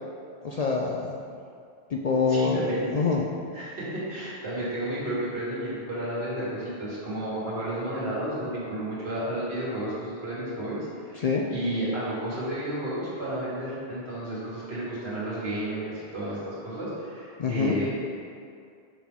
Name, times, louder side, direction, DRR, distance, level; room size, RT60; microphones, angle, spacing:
voice 1, 0.4-1.2 1.9-2.6 2.9-3.3 11.2-11.5 17.4-17.8, left 5 dB, 55° left, -1 dB, 0.4 m, -25 dB
voice 2, 2.3-2.9 3.5-17.9, right 1 dB, 80° right, -8 dB, 1.9 m, -32 dB
6.0 x 4.6 x 3.6 m, 2.3 s
omnidirectional pair, 1.1 m